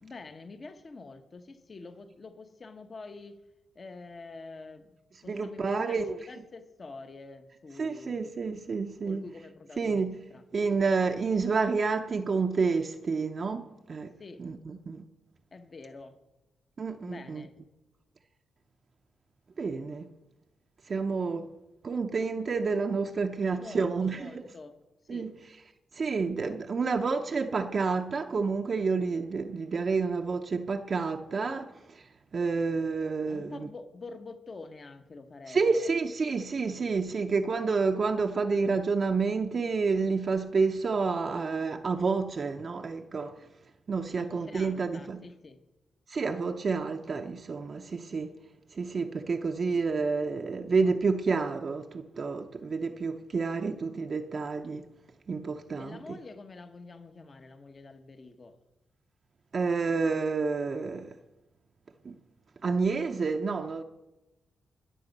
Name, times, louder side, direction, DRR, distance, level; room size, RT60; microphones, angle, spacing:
voice 1, 0.0-3.4 3.7-5.0 5.2-8.2 9.0-10.4 14.2-14.4 15.5-16.2 17.0-17.5 23.6-24.8 25.1-25.3 33.3-35.9 44.1-45.6 55.8-58.5, left 3 dB, 40° left, 1.2 m, -46 dB
voice 2, 5.3-6.2 7.8-9.2 9.8-10.2 10.5-14.1 14.4-15.1 16.8-17.5 19.6-20.1 20.9-21.5 21.8-24.4 25.1-25.3 25.9-32.1 32.3-33.7 35.5-43.4 43.9-45.3 46.1-48.3 48.7-54.9 55.3-56.2 59.5-61.2 62.0-62.2 62.6-63.8, right 4 dB, 50° right, 0.7 m, -29 dB
20.0 x 6.9 x 5.3 m
cardioid pair, 80°, 0 cm